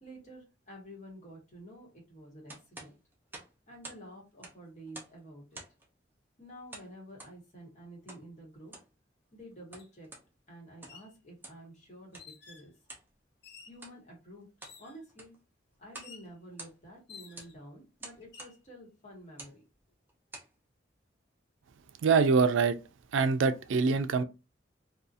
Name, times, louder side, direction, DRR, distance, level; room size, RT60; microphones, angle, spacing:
voice 1, 0.0-2.9 3.7-5.6 6.4-8.7 9.3-10.1 10.5-12.7 13.7-14.5 14.8-15.3 15.8-19.6, right 1 dB, 35° left, 1.2 m, -50 dB
sound 1, 2.5-4.1 4.3-5.2 5.5-5.9 6.7-7.4 8.1-8.3 8.6-8.9 9.5-10.3 10.7-11.1 11.4-11.7 12.1-12.3 12.9-13.1 13.7-14.0 14.4-14.8 15.1-15.4 15.9-16.2 16.4-17.0 17.4-17.5 18.0-18.6 19.3-19.6 20.1-20.5, right 2 dB, 10° right, 0.5 m, -48 dB
sound 2, 9.8-9.9 10.7-11.1 12.1-12.7 13.4-13.8 14.6-15.0 16.0-16.3 17.1-17.7 18.2-18.6, left 6 dB, 55° left, 0.5 m, -52 dB
voice 2, 22.0-22.8 23.1-24.2, right 5 dB, 80° right, 0.3 m, -24 dB
2.6 x 2.3 x 2.4 m
head